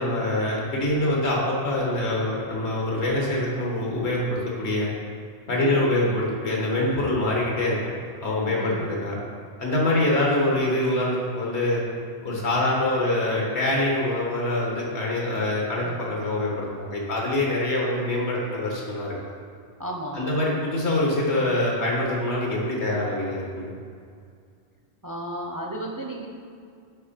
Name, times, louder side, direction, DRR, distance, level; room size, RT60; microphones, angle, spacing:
voice 1, 0.0-4.9 5.5-7.9 8.2-9.2 9.6-11.8 12.2-19.1 20.1-23.7, left 1 dB, 85° left, -2 dB, 1.6 m, -25 dB
voice 2, 5.5-5.8 8.5-8.9 9.9-10.2 15.8-16.0 19.8-20.2 25.0-26.3, right 1 dB, 30° right, 0 dB, 0.4 m, -34 dB
6.4 x 5.2 x 4.2 m, 2.3 s
omnidirectional pair, 1.1 m